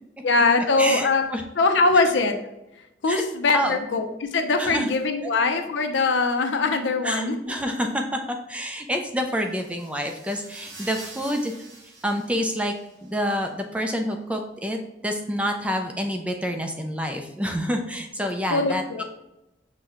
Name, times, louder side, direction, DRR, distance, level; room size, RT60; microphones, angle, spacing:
voice 1, 0.2-1.3 1.6-2.4 3.0-7.4 18.5-19.0, left 3 dB, 80° left, 6 dB, 0.5 m, -22 dB
voice 2, 0.8-1.4 3.1-3.2 3.5-3.8 4.6-4.9 7.0-11.5 12.0-12.7 13.0-19.0, equal, 5° right, 4 dB, 0.3 m, -28 dB
sound 1, 9.3-13.2, right 2 dB, 90° right, 1.5 m, -46 dB
6.0 x 2.2 x 3.5 m, 0.91 s
head